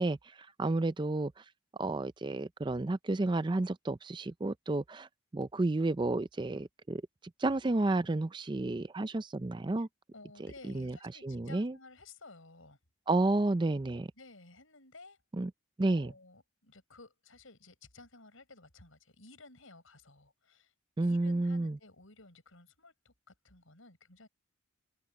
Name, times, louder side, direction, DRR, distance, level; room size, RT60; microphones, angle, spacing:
voice 1, 0.0-1.4 1.8-7.0 7.4-9.9 10.7-11.0 11.2-11.8 13.1-14.1 15.4-15.5 15.8-16.1 21.0-21.8, right 2 dB, 20° right, 0.4 m, -31 dB
voice 2, 10.1-12.8 14.2-15.2 15.8-20.7 21.0-24.3, left 3 dB, 75° left, 6.0 m, -55 dB
head